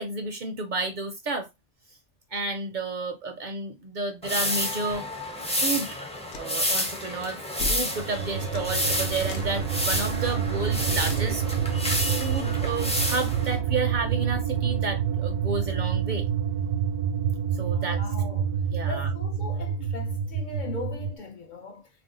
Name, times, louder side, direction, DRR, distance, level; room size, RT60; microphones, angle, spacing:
voice 1, 0.0-1.5 2.3-5.1 5.4-5.9 6.4-11.4 11.8-11.9 12.2-16.2 17.5-18.0 18.7-19.1, right 3 dB, 55° right, 0.5 m, -31 dB
sound 1, 4.2-13.6, left 1 dB, 10° left, 0.3 m, -30 dB
sound 2, 6.3-6.5 7.6-7.9 8.5-8.7 9.2-9.6 10.0-10.1 11.0-11.3, left 2 dB, 85° left, 0.9 m, -35 dB
sound 3, 7.9-21.2, right 8 dB, 85° right, 0.9 m, -28 dB
voice 2, 17.6-18.6 18.9-21.9, left 3 dB, 55° left, 0.6 m, -39 dB
2.6 x 2.1 x 3.7 m
omnidirectional pair, 1.1 m